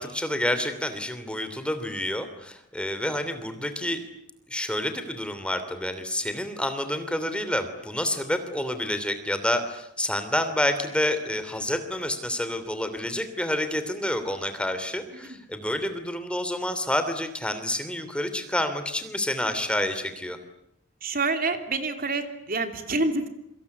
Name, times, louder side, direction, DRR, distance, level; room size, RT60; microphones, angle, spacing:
voice 1, 0.0-4.0 4.5-20.4, left 1 dB, 5° left, 9 dB, 2.9 m, -28 dB
voice 2, 21.0-23.3, right 3 dB, 50° right, 7 dB, 3.1 m, -27 dB
28.0 x 25.0 x 8.4 m, 0.76 s
head